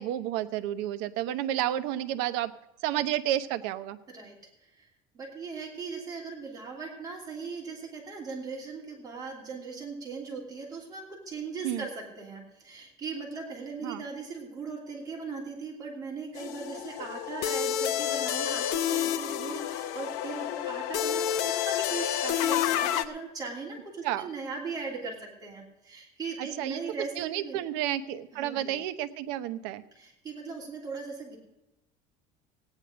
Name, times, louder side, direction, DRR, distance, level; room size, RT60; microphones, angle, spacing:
voice 1, 0.0-2.5 2.8-4.0 11.6-11.9 13.8-14.0 24.0-24.3 26.6-26.8 27.2-29.8, right 12 dB, 75° right, 10 dB, 0.9 m, -31 dB
voice 2, 5.1-27.6 28.3-28.7 29.9-31.4, right 4 dB, 20° right, -2 dB, 2.9 m, -39 dB
sound 1, 16.3-23.0, left 10 dB, 70° left, 0.8 m, -29 dB
16.5 x 9.9 x 5.0 m, 0.95 s
cardioid pair, 180°, 18 cm